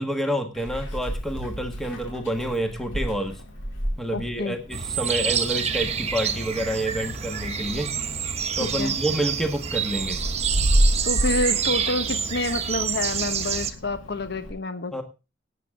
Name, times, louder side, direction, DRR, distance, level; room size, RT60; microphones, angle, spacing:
voice 1, 0.0-3.4 4.0-7.9 8.6-10.2 14.9-15.0, right 1 dB, ahead, 5 dB, 1.5 m, -28 dB
Meow, 0.5-14.5, right 1 dB, 85° left, 4.6 m, -31 dB
voice 2, 4.1-4.6 8.6-9.0 11.0-15.0, left 2 dB, 60° left, 10 dB, 1.1 m, -28 dB
sound 1, 4.7-13.7, right 7 dB, 35° right, 1.2 m, -27 dB
17.5 x 9.0 x 3.7 m, 0.30 s
head